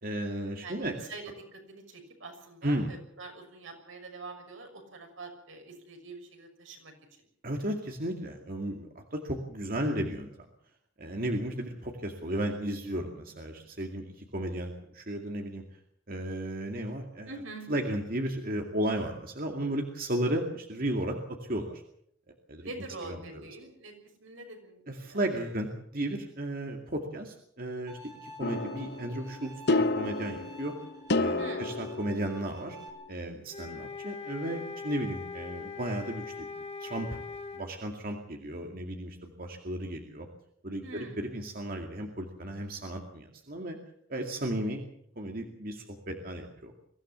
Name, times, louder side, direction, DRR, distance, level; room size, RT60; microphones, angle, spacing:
voice 1, 0.0-1.0 2.6-2.9 7.4-10.3 11.0-15.6 16.1-17.3 17.7-21.8 22.5-22.7 23.0-23.4 24.9-30.7 31.1-32.8 33.1-36.5 36.8-37.2 37.5-40.3 40.6-43.8 44.1-44.8 45.2-46.7, right 1 dB, 45° right, 3 dB, 2.3 m, -34 dB
voice 2, 1.1-6.9 17.3-17.7 22.6-23.9 24.2-24.8 25.1-25.2 31.4-31.6 40.8-41.2, right 2 dB, 80° right, 4 dB, 6.3 m, -44 dB
Bowed string instrument, 27.9-32.9, left 1 dB, 20° right, 4.4 m, -50 dB
sound 1, 28.4-32.9, left 2 dB, 55° left, 0.9 m, -31 dB
sound 2, 33.5-37.7, left 5 dB, 30° left, 2.7 m, -41 dB
23.5 x 16.0 x 7.5 m, 0.67 s
head